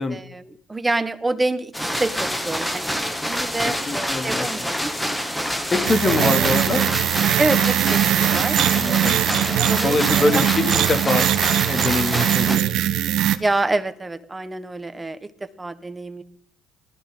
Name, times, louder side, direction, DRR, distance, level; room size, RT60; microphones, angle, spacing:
voice 1, 0.1-2.9 3.2-4.9 5.7-6.9 7.4-8.6 8.8-10.5 13.4-16.2, right 2 dB, 20° right, 12 dB, 1.4 m, -27 dB
sound 1, 1.7-12.6, equal, 5° left, 2.3 m, -27 dB
voice 2, 3.6-4.5 5.7-6.8 8.7-9.2 9.8-11.3 11.6-12.8, left 3 dB, 35° left, 5 dB, 2.6 m, -24 dB
sound 2, 5.8-13.4, right 12 dB, 70° right, 1.0 m, -21 dB
20.0 x 13.5 x 3.9 m, 0.67 s
supercardioid pair, 65°, 0 cm